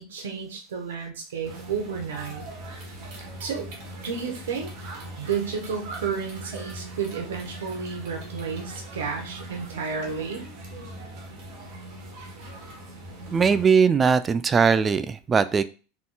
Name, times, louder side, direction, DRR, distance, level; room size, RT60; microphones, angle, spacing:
voice 1, 0.0-2.4 3.4-3.7 4.0-4.7 5.2-10.5, right 6 dB, 80° right, 3 dB, 0.9 m, -31 dB
sound 1, 1.4-13.7, right 1 dB, 60° right, 1.3 m, -40 dB
voice 2, 13.3-15.6, right 6 dB, 25° right, 13 dB, 0.3 m, -20 dB
3.7 x 3.7 x 2.2 m, 0.35 s
hypercardioid pair, 90°, 0 cm